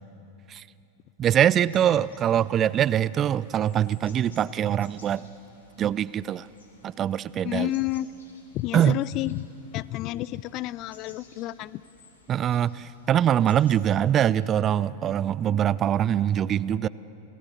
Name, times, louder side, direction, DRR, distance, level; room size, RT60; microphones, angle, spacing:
voice 1, 1.2-5.2 5.8-6.5 6.8-7.7 8.7-9.0 12.3-16.9, right 10 dB, 30° right, 20 dB, 0.4 m, -23 dB
sound 1, 1.3-14.6, left 3 dB, 70° left, 3.1 m, -57 dB
voice 2, 7.4-8.1 8.5-9.5 9.7-11.8, left 16 dB, 40° left, 20 dB, 0.4 m, -30 dB
26.5 x 18.0 x 7.1 m, 2.9 s
figure-of-eight pair, 90°, 0 cm